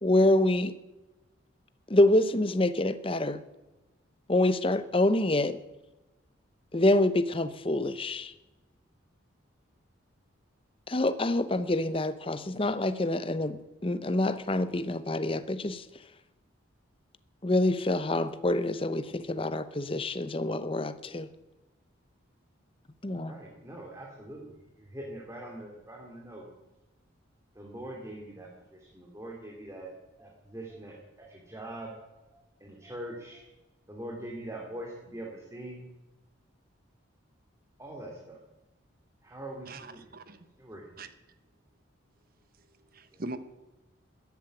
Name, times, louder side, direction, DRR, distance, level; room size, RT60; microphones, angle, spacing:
voice 1, 0.0-0.7 1.9-3.4 4.3-5.6 6.7-8.3 10.9-15.8 17.4-21.3 23.0-23.3, left 1 dB, 25° left, 0.7 m, -26 dB
voice 2, 23.3-26.5 27.5-29.9 30.2-31.9 32.3-33.4 33.9-35.9 37.8-38.4 39.2-40.1 40.6-40.9, right 1 dB, 15° right, 2.5 m, -43 dB
voice 3, 39.7-40.5 41.0-41.1 43.2-43.4, right 2 dB, 45° right, 1.1 m, -40 dB
13.5 x 10.5 x 9.1 m
head